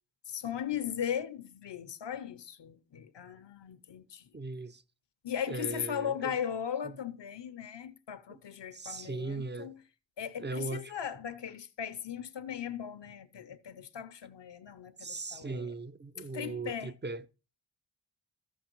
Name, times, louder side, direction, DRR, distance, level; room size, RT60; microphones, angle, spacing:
voice 1, 0.3-4.3 5.2-9.8 10.2-15.7 16.3-16.9, left 9 dB, 75° left, 0.7 m, -38 dB
voice 2, 4.3-4.8 5.5-6.4 6.8-7.0 8.3-8.4 8.7-9.7 10.4-10.9 15.0-17.2, right 3 dB, 25° right, 0.4 m, -38 dB
14.0 x 5.8 x 2.9 m
wide cardioid pair, 120°, 43 cm